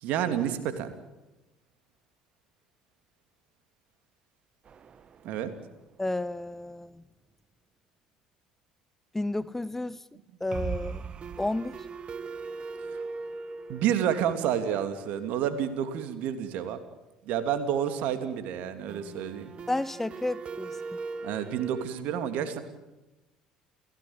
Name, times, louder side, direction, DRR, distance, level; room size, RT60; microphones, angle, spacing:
voice 1, 0.0-0.9 5.2-5.5 13.7-16.8 17.3-19.5 21.2-22.6, right 9 dB, 60° right, 2.9 m, -29 dB
sound 1, 4.7-5.9 6.1-6.2 6.5-6.6 10.5-16.2 18.9-21.9, right 4 dB, 40° right, 1.4 m, -40 dB
voice 2, 6.0-7.0 9.1-10.0 10.4-11.0 11.4-11.8 19.7-20.7, left 2 dB, 10° left, 0.8 m, -31 dB
29.5 x 17.0 x 8.9 m
figure-of-eight pair, 60°, 3 cm